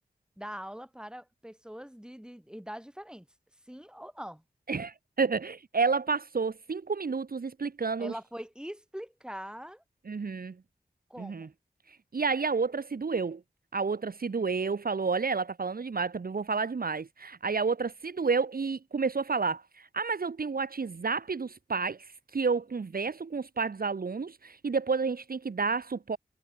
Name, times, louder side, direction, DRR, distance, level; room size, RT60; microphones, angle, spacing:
voice 1, 0.4-3.3 3.7-4.4 8.0-9.8 11.1-11.5, equal, 5° right, 3.8 m, -42 dB
voice 2, 4.7-8.1 10.1-10.5 11.2-11.5 12.1-13.4 13.7-22.1 22.3-26.2, right 4 dB, 70° right, 0.9 m, -30 dB
wide cardioid pair, 45°, 16 cm